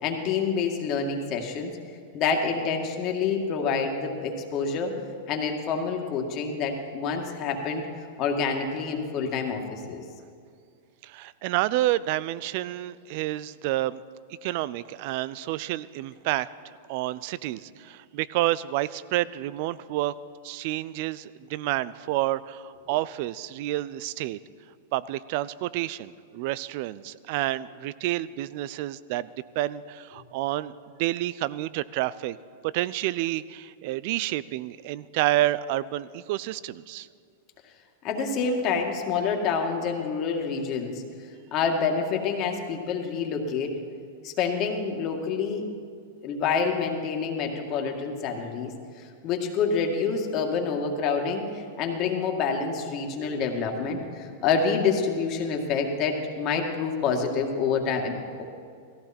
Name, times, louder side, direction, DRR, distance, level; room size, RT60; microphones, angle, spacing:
voice 1, 0.0-1.7 2.1-4.9 5.3-7.9 8.2-10.0 38.0-41.0 41.5-43.7 44.2-45.7 46.2-48.7 49.0-58.4, left 5 dB, 45° left, 2 dB, 2.1 m, -27 dB
voice 2, 11.0-14.0 14.4-20.2 20.4-24.4 24.9-29.3 29.6-32.4 32.6-37.1, right 15 dB, 55° right, 18 dB, 0.5 m, -29 dB
17.5 x 15.0 x 4.4 m, 2.2 s
hypercardioid pair, 115°, 0 cm